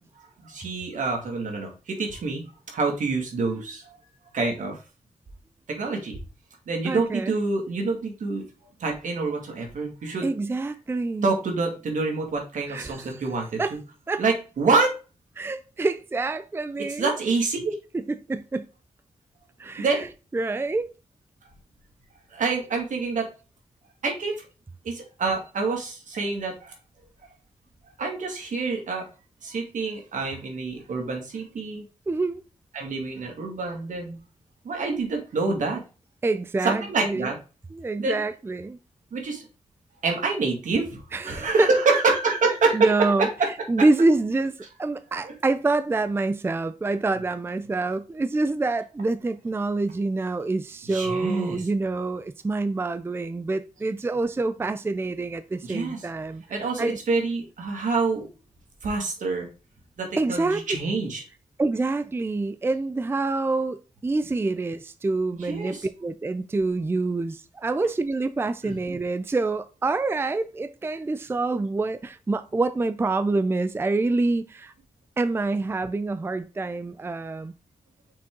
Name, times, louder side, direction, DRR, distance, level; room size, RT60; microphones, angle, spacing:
voice 1, 0.4-4.0 4.3-4.8 5.7-6.2 6.7-8.4 8.8-10.3 11.2-13.6 14.2-14.9 17.0-17.7 19.8-20.1 22.3-23.3 24.0-24.3 24.8-26.7 28.0-29.1 29.4-31.8 32.7-34.2 34.6-35.8 36.6-37.4 38.0-38.2 39.1-39.5 40.0-42.8 43.2-43.5 45.2-45.3 50.9-51.7 55.6-56.0 56.5-58.3 58.8-59.5 60.0-61.2 65.3-65.9 68.6-68.8, right 3 dB, 80° right, 2.1 m, -27 dB
voice 2, 6.8-7.3 10.2-11.3 12.7-13.3 13.6-13.8 14.1-14.2 15.4-17.1 17.9-18.7 19.6-19.8 20.3-20.9 32.1-32.4 36.2-37.3 37.7-38.8 41.1-41.7 42.7-43.3 43.7-56.4 56.8-57.0 60.2-60.6 61.6-63.8 64.0-74.7 75.2-77.5, right 3 dB, 20° right, 0.4 m, -26 dB
6.0 x 4.5 x 3.7 m
wide cardioid pair, 120°, 13 cm